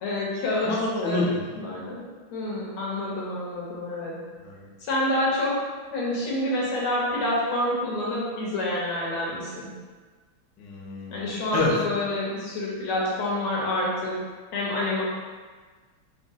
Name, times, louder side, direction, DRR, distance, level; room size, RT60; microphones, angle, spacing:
voice 1, 0.0-0.7 1.0-1.2 1.6-2.0 2.3-4.2 4.8-5.6 5.9-9.7 11.1-14.2 14.5-15.0, left 1 dB, 80° left, -5 dB, 1.8 m, -27 dB
voice 2, 0.6-1.5 4.4-4.7 10.6-11.7, left 2 dB, 65° left, -3 dB, 1.3 m, -28 dB
4.6 x 2.0 x 3.8 m, 1.4 s
omnidirectional pair, 2.3 m